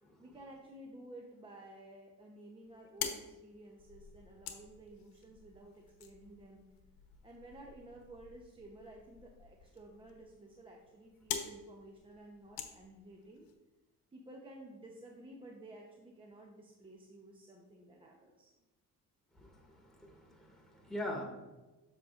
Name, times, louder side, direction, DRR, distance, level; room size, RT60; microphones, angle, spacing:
voice 1, 0.2-6.6 7.2-13.5 14.1-18.6, right 1 dB, 15° right, 0 dB, 0.8 m, -53 dB
sound 1, 2.6-13.5, left 8 dB, 80° left, 1.0 m, -47 dB
voice 2, 19.3-21.2, left 1 dB, ahead, -2 dB, 1.8 m, -43 dB
7.6 x 6.6 x 2.5 m, 1.1 s
cardioid pair, 120°, 34 cm